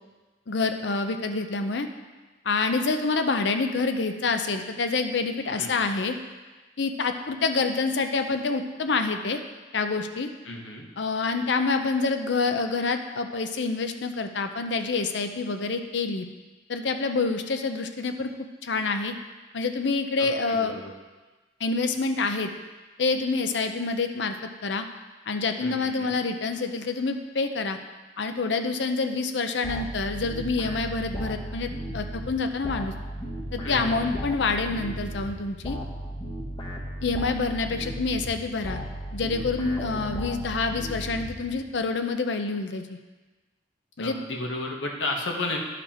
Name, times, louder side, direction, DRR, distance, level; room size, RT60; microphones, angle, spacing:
voice 1, 0.5-1.9 2.4-6.1 6.8-9.4 9.7-10.3 11.0-16.3 16.7-18.3 18.6-19.1 19.5-20.7 21.6-22.5 23.0-24.9 25.3-27.8 28.2-32.9 33.5-35.8 37.0-38.8 39.1-43.0 44.0-44.3, left 4 dB, 70° left, 7 dB, 0.6 m, -27 dB
voice 2, 5.5-5.9 10.4-10.9 20.2-20.9 25.6-26.1 33.6-34.1 44.0-45.6, left 2 dB, 90° left, 1 dB, 1.3 m, -33 dB
sound 1, 29.6-41.8, equal, 25° left, 1.0 m, -35 dB
11.5 x 5.1 x 4.3 m, 1.3 s
head